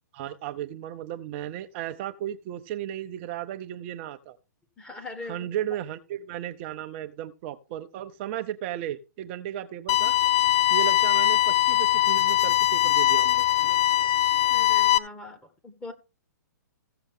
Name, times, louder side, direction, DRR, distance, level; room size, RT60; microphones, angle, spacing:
voice 1, 0.1-4.4 5.3-10.2 10.7-13.4, right 11 dB, 40° right, 0.7 m, -35 dB
voice 2, 4.8-5.6 13.6-13.8 14.5-15.9, left 3 dB, 10° left, 1.7 m, -41 dB
sound 1, 9.9-15.0, left 13 dB, 30° left, 0.6 m, -21 dB
15.5 x 6.8 x 3.7 m
hypercardioid pair, 135°, 10 cm